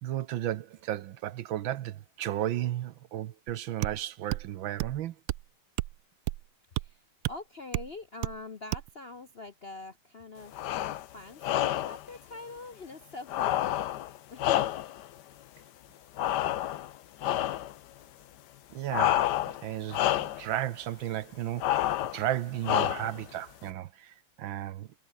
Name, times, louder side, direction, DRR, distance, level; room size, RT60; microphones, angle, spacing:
voice 1, 0.0-5.1 18.7-24.9, right 12 dB, 70° right, 1.5 m, -34 dB
sound 1, 3.8-4.0 4.3-4.5 4.8-5.0 5.3-5.4 5.8-5.9 6.3-6.4 6.8-6.9 7.2-7.4 7.7-7.9 8.2-8.4 8.7-8.9, right 17 dB, 90° right, 1.5 m, -32 dB
voice 2, 7.3-10.6 11.1-13.8 14.3-14.7, left 3 dB, 45° left, 0.8 m, -44 dB
Male Breathing Slow, 10.5-11.1 11.4-12.0 13.3-15.1 16.2-16.9 17.2-17.7 18.9-19.6 19.9-20.5 21.6-22.2 22.6-23.2, left 13 dB, 65° left, 1.1 m, -28 dB
omnidirectional pair, 2.4 m